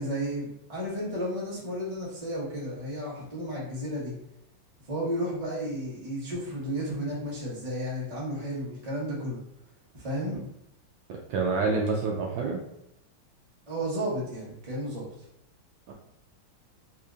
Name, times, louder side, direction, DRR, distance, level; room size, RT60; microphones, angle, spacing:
voice 1, 0.0-4.1 4.9-9.4 9.9-10.5 13.7-15.1, equal, 25° right, -6 dB, 1.0 m, -33 dB
voice 2, 11.1-12.6 15.9-16.0, right 4 dB, 75° right, -1 dB, 1.2 m, -27 dB
4.3 x 2.8 x 2.4 m, 0.78 s
omnidirectional pair, 2.3 m